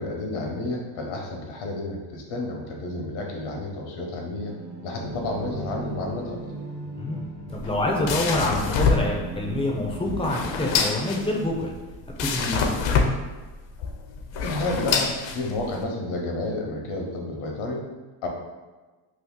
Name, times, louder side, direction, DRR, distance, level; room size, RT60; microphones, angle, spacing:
voice 1, 0.0-4.5 4.8-6.4 14.4-17.9 18.2-18.3, left 2 dB, 85° left, 1 dB, 0.9 m, -31 dB
sound 1, 4.4-12.0, right 3 dB, 55° right, 1.0 m, -38 dB
sound 2, 7.5-15.8, left 4 dB, 70° left, 0.6 m, -26 dB
voice 2, 7.5-11.7 12.2-12.7, left 1 dB, 15° left, -1 dB, 0.3 m, -26 dB
2.8 x 2.4 x 3.7 m, 1.3 s
cardioid pair, 110°, 48 cm